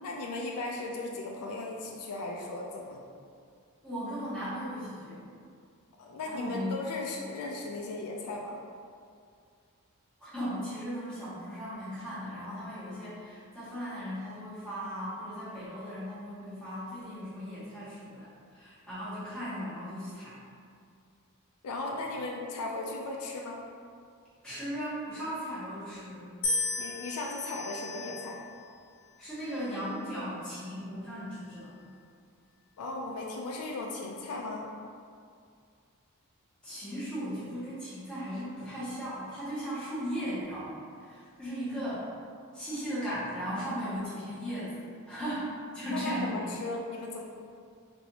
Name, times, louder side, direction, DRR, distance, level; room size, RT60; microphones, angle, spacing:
voice 1, 0.0-3.0 6.0-8.6 21.6-23.6 25.5-25.6 26.8-28.4 32.8-34.7 45.9-47.2, left 2 dB, 75° left, -1 dB, 0.4 m, -37 dB
voice 2, 3.8-5.2 6.2-6.7 10.2-20.4 24.4-26.3 29.2-31.7 36.6-42.1 42.5-46.4, equal, 5° left, -14 dB, 1.3 m, -37 dB
sound 1, 26.4-28.6 29.4-30.0, left 2 dB, 45° left, 0.7 m, -35 dB
3.3 x 2.6 x 2.8 m, 2.3 s
head